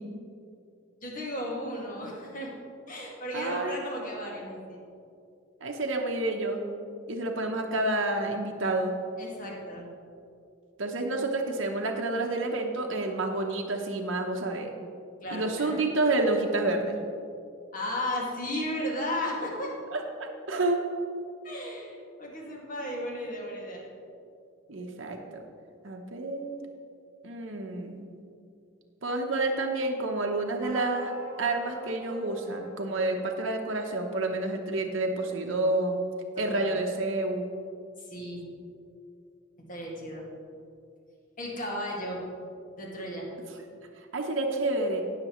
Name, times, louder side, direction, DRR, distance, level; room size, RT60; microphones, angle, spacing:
voice 1, 1.0-2.5 2.9-4.8 9.2-9.9 15.2-15.8 17.7-19.8 21.4-23.8 36.4-36.7 38.0-38.4 39.7-40.2 41.4-42.2 42.8-43.3, left 1 dB, 40° left, -3 dB, 2.0 m, -34 dB
voice 2, 3.3-3.8 5.6-6.6 7.1-8.9 10.8-14.7 15.3-17.0 19.9-20.8 24.7-25.4 25.8-26.6 27.2-28.0 29.0-31.1 31.4-36.0 36.4-37.5 44.1-45.0, right 2 dB, 70° right, 2 dB, 0.9 m, -29 dB
sound 1, 30.6-35.6, left 2 dB, 15° left, 1.9 m, -45 dB
18.0 x 6.8 x 3.1 m, 2.5 s
head